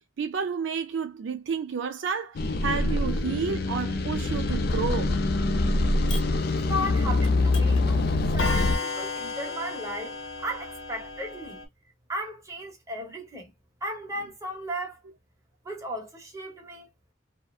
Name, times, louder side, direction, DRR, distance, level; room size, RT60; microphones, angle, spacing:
voice 1, 0.2-5.2, right 6 dB, 70° right, 0.4 m, -31 dB
sound 1, 2.4-8.8, left 2 dB, 55° left, 0.4 m, -24 dB
Clock, 6.1-6.2 7.2-7.3 7.5-7.8 8.4-11.6, left 4 dB, 75° left, 0.8 m, -34 dB
voice 2, 6.6-11.6 12.1-13.5 13.8-15.0 15.6-16.9, equal, 15° right, 0.8 m, -35 dB
2.7 x 2.0 x 2.2 m
head